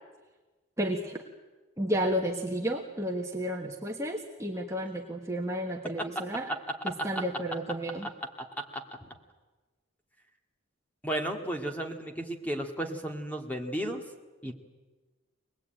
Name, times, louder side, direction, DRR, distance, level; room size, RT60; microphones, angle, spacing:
voice 1, 0.8-1.2 1.8-6.5 6.8-8.1, equal, 15° right, 0 dB, 1.4 m, -32 dB
voice 2, 6.5-7.2 8.4-8.8 11.0-14.0 14.4-14.5, right 1 dB, 5° left, 3 dB, 2.1 m, -34 dB
24.5 x 20.0 x 9.1 m, 1.2 s
head